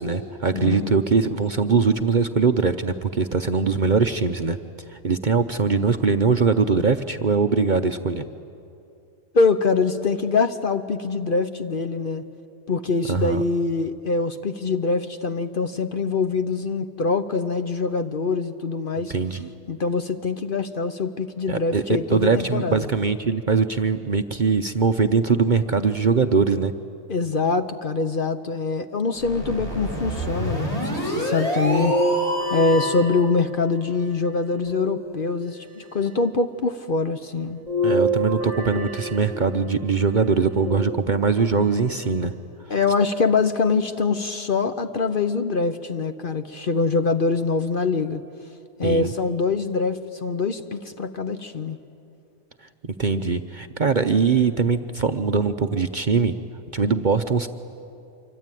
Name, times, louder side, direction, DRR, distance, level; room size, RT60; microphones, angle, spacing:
voice 1, 0.0-4.6 4.9-8.2 13.1-13.4 19.1-19.5 21.5-21.8 22.1-26.7 37.8-42.3 48.8-49.1 52.8-56.3 56.7-57.5, right 5 dB, 45° right, 7 dB, 0.7 m, -21 dB
voice 2, 0.5-1.0 9.3-12.2 12.7-19.1 19.7-22.9 27.1-32.0 32.5-37.6 42.7-48.2 48.8-51.8, left 4 dB, 45° left, 9 dB, 0.9 m, -24 dB
sound 1, 29.2-33.1, equal, 25° left, 5.7 m, -27 dB
sound 2, 31.7-33.9 34.7-35.7 37.7-39.7 40.7-41.5 42.2-42.3 43.7-43.8, right 1 dB, 65° left, 6.3 m, -27 dB
26.0 x 24.0 x 9.2 m, 2.7 s
omnidirectional pair, 1.4 m